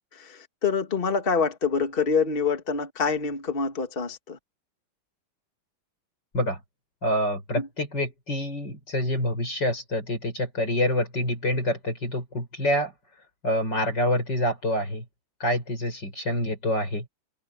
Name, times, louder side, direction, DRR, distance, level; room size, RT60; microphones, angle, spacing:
voice 1, 0.0-4.4 7.6-7.7, left 5 dB, 30° left, 2.0 m, -26 dB
voice 2, 7.0-12.9 13.4-15.0 15.4-17.0, left 1 dB, 60° left, 8.3 m, -26 dB
omnidirectional pair, 2.1 m